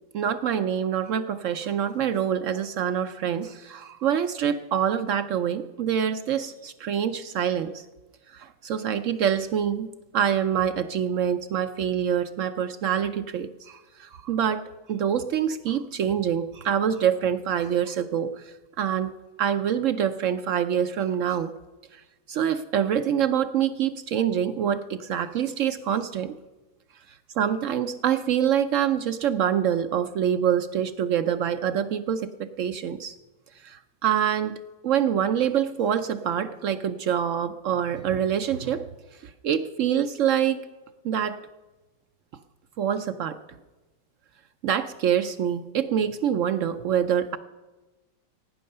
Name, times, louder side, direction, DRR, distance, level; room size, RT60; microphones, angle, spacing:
voice 1, 0.1-7.9 8.3-14.6 14.9-19.1 19.4-21.5 21.9-26.4 27.1-33.2 33.6-34.6 34.8-40.7 41.0-41.4 42.8-43.4 44.6-47.4, right 9 dB, 80° right, 10 dB, 0.7 m, -26 dB
16.5 x 9.4 x 6.6 m, 1.1 s
omnidirectional pair, 2.0 m